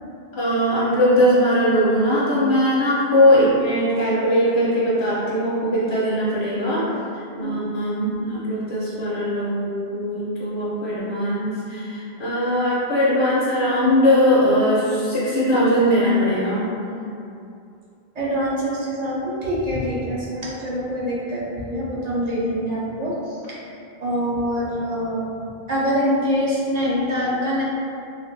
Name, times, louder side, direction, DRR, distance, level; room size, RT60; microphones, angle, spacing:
voice 1, 0.3-6.8 7.4-16.7, equal, 40° left, -8 dB, 0.5 m, -20 dB
voice 2, 18.2-23.6 24.0-25.2 25.7-27.6, equal, 50° right, -6 dB, 0.6 m, -25 dB
3.2 x 2.4 x 2.6 m, 2.6 s
omnidirectional pair, 1.0 m